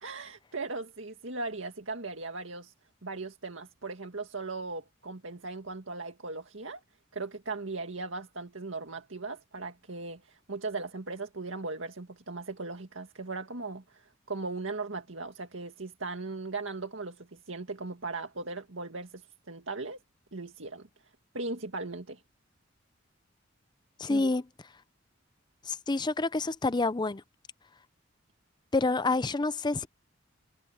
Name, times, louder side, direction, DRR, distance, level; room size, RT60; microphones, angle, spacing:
voice 1, 0.0-2.7 3.0-6.8 7.1-20.0 20.3-20.9 21.3-22.2 24.1-24.4, right 3 dB, 75° right, 2.0 m, -38 dB
voice 2, 24.0-24.4 25.7-27.2 28.7-29.9, left 3 dB, 20° left, 0.5 m, -28 dB
head